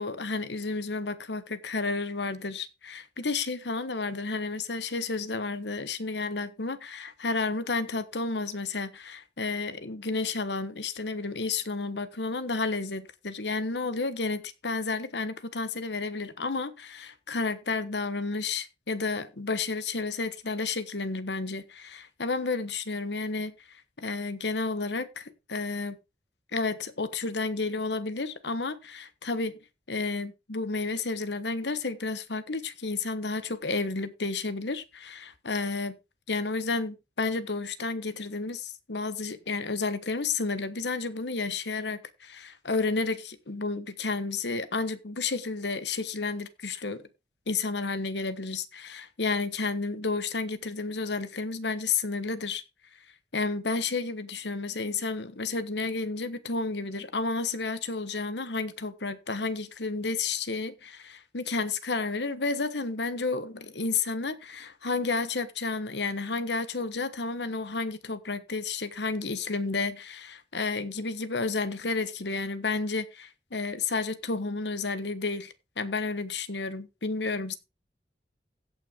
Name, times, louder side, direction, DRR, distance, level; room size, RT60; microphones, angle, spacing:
voice 1, 0.0-26.0 26.5-29.5 29.9-36.0 36.3-47.0 47.5-52.6 53.3-77.5, left 3 dB, 85° left, 1.2 m, -31 dB
16.0 x 6.0 x 3.6 m
head